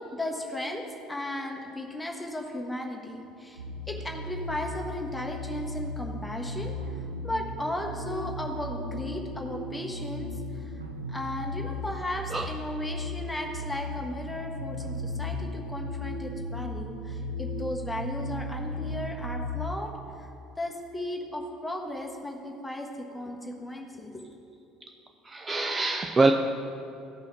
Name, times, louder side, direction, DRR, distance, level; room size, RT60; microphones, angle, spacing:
voice 1, 0.1-6.8 7.2-10.7 11.1-19.9 20.2-20.3 20.6-24.3, left 1 dB, 10° left, 0 dB, 1.3 m, -35 dB
sound 1, 3.6-19.7, left 1 dB, 80° right, 0.6 m, -36 dB
voice 2, 25.2-26.3, right 3 dB, 25° right, 5 dB, 0.4 m, -24 dB
14.5 x 5.6 x 4.0 m, 2.8 s
figure-of-eight pair, 60°, 0 cm